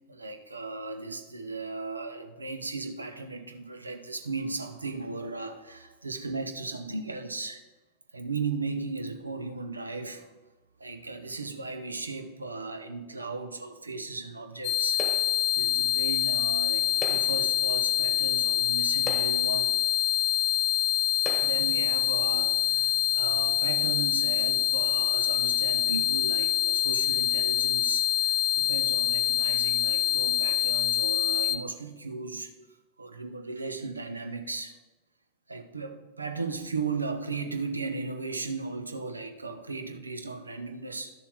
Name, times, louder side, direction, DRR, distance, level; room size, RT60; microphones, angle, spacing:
voice 1, 0.0-7.6 8.1-10.2 10.8-15.0 15.5-19.8 21.3-32.5 33.0-34.7 35.5-41.1, right 3 dB, 80° right, 7 dB, 0.8 m, -36 dB
sound 1, 14.6-31.6, left 12 dB, 40° left, 0.5 m, -25 dB
sound 2, 15.0-15.5 16.9-17.5 18.4-18.5 19.0-19.6 20.5-20.6 21.2-21.8, left 1 dB, 10° left, 1.3 m, -39 dB
12.0 x 6.9 x 3.6 m, 1.2 s
figure-of-eight pair, 90°, 0 cm